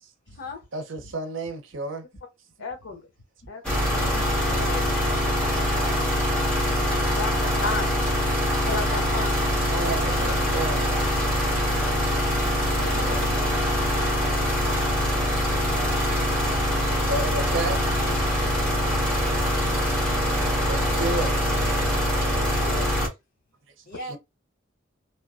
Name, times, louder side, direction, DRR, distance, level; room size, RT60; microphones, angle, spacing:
voice 1, 0.7-2.1 9.7-11.1 16.8-17.8 20.7-21.5 23.7-23.8 24.0-24.2, right 2 dB, 75° right, 0.6 m, -32 dB
voice 2, 2.6-3.1 3.5-3.6 7.0-7.9 8.6-9.4 19.4-19.6 22.6-22.9, left 3 dB, 90° left, 0.5 m, -33 dB
sound 1, 3.6-23.1, equal, 5° left, 1.2 m, -24 dB
voice 3, 3.8-4.8 12.4-13.4, left 1 dB, 65° left, 1.9 m, -44 dB
voice 4, 4.7-6.4 12.6-14.1 23.9-24.2, left 2 dB, 45° left, 1.0 m, -40 dB
3.0 x 2.2 x 2.4 m
head